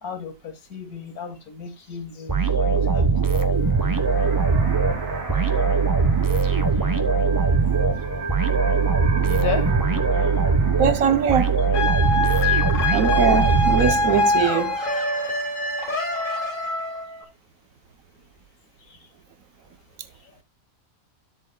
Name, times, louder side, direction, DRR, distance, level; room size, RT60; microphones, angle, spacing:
voice 1, 0.0-3.4 5.3-9.7 10.1-10.3 12.3-12.6 18.8-19.1 20.2-20.3, left 7 dB, 80° left, 1.9 m, -37 dB
sound 1, 2.3-14.5, right 5 dB, 15° right, 0.8 m, -21 dB
sound 2, 3.5-16.9, right 3 dB, 45° right, 1.9 m, -38 dB
voice 2, 10.8-11.6 12.9-14.7, right 7 dB, 70° right, 1.3 m, -21 dB
sound 3, 11.7-17.2, left 2 dB, 60° left, 2.6 m, -24 dB
12.5 x 7.7 x 2.3 m
omnidirectional pair, 1.5 m